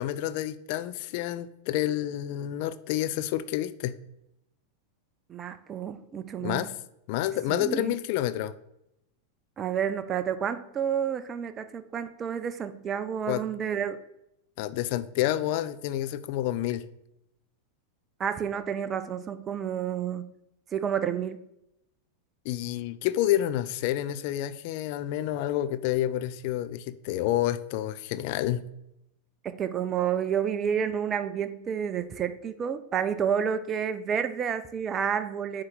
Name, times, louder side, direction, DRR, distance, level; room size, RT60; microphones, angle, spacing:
voice 1, 0.0-3.9 6.4-6.7 7.1-8.5 13.3-13.4 14.6-16.8 22.5-28.6, left 13 dB, 45° left, 0.4 m, -29 dB
voice 2, 5.3-6.7 7.5-8.0 9.6-14.0 18.2-20.3 20.7-21.4 29.4-35.6, right 8 dB, 25° right, 0.5 m, -30 dB
9.5 x 3.2 x 4.0 m
figure-of-eight pair, 90°, 0 cm